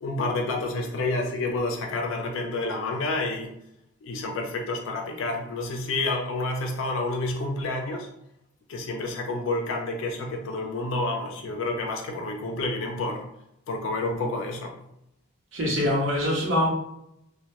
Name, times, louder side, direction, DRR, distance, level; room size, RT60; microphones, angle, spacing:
voice 1, 0.0-3.5 4.0-8.1 8.7-13.3 13.7-14.7, left 2 dB, 70° left, 0.4 m, -29 dB
voice 2, 15.5-16.7, left 1 dB, 65° right, 0.7 m, -24 dB
2.1 x 2.1 x 2.8 m
head